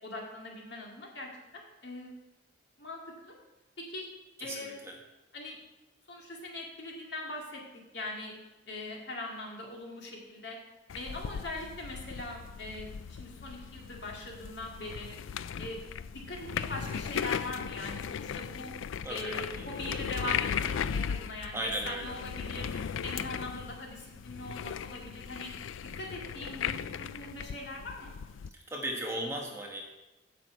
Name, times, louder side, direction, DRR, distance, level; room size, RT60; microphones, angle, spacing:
voice 1, 0.0-2.1 2.8-3.4 3.8-4.1 4.4-4.8 5.3-5.6 6.1-7.6 7.9-8.4 8.7-10.6 10.9-15.1 15.6-15.8 16.1-18.7 19.1-22.7 23.0-25.5 25.8-28.1, left 2 dB, 55° left, -1 dB, 2.4 m, -41 dB
voice 2, 4.4-4.9 19.0-19.7 21.5-22.2 22.5-22.9 28.7-29.8, right 1 dB, 15° right, 0 dB, 1.3 m, -37 dB
sound 1, 10.9-28.5, left 7 dB, 75° left, 0.4 m, -37 dB
9.0 x 6.0 x 8.0 m, 1.0 s
head